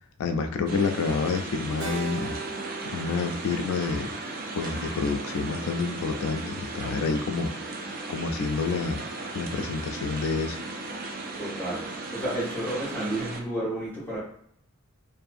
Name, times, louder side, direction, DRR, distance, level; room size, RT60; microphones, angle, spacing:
voice 1, 0.2-2.4 2.8-4.1 4.5-7.5 8.1-9.0 9.3-10.6, left 4 dB, 70° left, 6 dB, 0.3 m, -28 dB
sound 1, 0.7-13.4, right 2 dB, 40° right, 0.4 m, -36 dB
Keyboard (musical), 1.8-6.2, right 4 dB, 85° right, 0.6 m, -41 dB
voice 2, 11.4-14.2, right 1 dB, 10° left, -9 dB, 1.1 m, -31 dB
2.5 x 2.5 x 2.4 m, 0.65 s
head